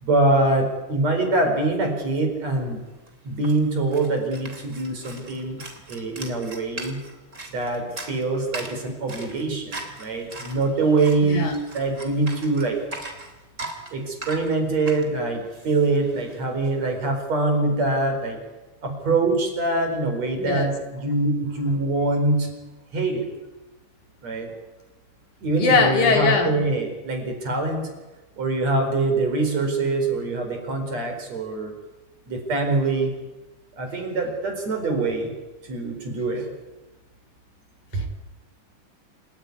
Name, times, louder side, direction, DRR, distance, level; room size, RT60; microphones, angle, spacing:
voice 1, 0.0-2.8 3.3-5.6 5.9-7.0 7.5-11.5 11.7-12.8 13.9-18.4 18.8-22.5 22.9-23.3 24.2-24.5 25.4-27.9 28.4-31.7 32.3-33.1 33.8-35.3 35.7-36.4 37.9-38.1, right 2 dB, 50° right, 4 dB, 5.6 m, -24 dB
sound 1, 2.6-2.7 2.8-16.7, right 2 dB, 20° right, 3.5 m, -40 dB
voice 2, 11.2-11.5 20.4-20.7 25.6-26.6 37.9-38.1, left 4 dB, 65° left, 4 dB, 4.1 m, -21 dB
28.5 x 16.0 x 9.7 m, 1.1 s
omnidirectional pair, 3.8 m